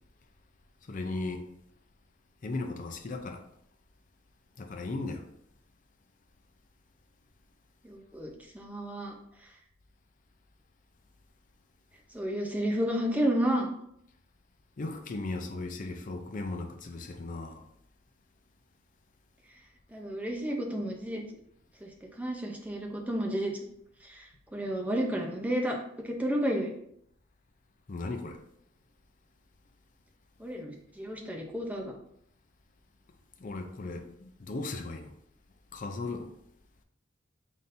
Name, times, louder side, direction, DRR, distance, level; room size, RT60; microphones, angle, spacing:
voice 1, 0.9-1.5 2.4-3.4 4.6-5.2 14.8-17.6 27.9-28.4 33.4-35.1 35.7-36.3, left 2 dB, 40° left, 0.5 m, -36 dB
voice 2, 7.8-9.1 12.1-13.7 19.9-21.2 21.8-21.9 22.2-23.5 24.0-25.8 26.0-26.7 30.4-31.9, equal, 10° right, 0.6 m, -31 dB
4.1 x 3.8 x 2.6 m
head